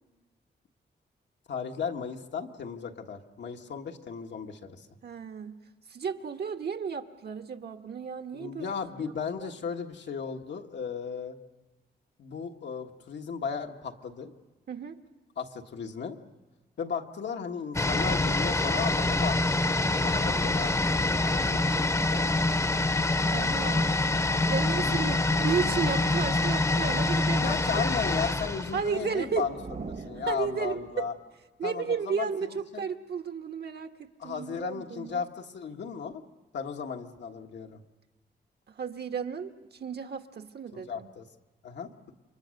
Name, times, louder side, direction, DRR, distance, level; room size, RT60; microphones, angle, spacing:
voice 1, 1.5-4.9 8.3-11.4 12.2-14.3 15.4-16.2 16.8-22.3 24.8-25.2 27.4-29.6 30.1-31.1 31.6-32.9 34.2-36.2 36.5-37.8 40.7-41.2 41.6-42.1, left 6 dB, 90° left, 3 dB, 1.6 m, -35 dB
voice 2, 5.0-5.6 5.9-8.7 9.0-9.1 9.4-9.5 14.7-15.0 23.3-24.0 24.5-27.8 28.7-29.4 30.3-31.1 31.6-35.2 38.7-41.1, right 6 dB, 70° right, 6 dB, 1.4 m, -33 dB
sound 1, 17.7-29.5 29.8-29.9, left 2 dB, 15° left, 0.8 m, -26 dB
sound 2, 28.7-31.3, right 4 dB, 50° right, 1.3 m, -44 dB
29.5 x 25.0 x 6.5 m, 1.2 s
wide cardioid pair, 95°, 18 cm